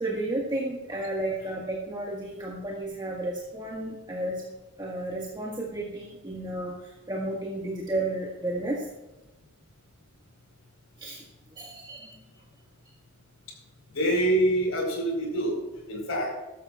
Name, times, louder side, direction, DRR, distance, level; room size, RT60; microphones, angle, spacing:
voice 1, 0.0-4.4 4.8-8.9 11.0-11.2 11.5-12.2, right 1 dB, 20° right, -4 dB, 1.7 m, -32 dB
voice 2, 13.9-15.6 15.9-16.3, right 1 dB, 80° left, 1 dB, 4.6 m, -25 dB
15.5 x 13.0 x 2.5 m, 1.1 s
head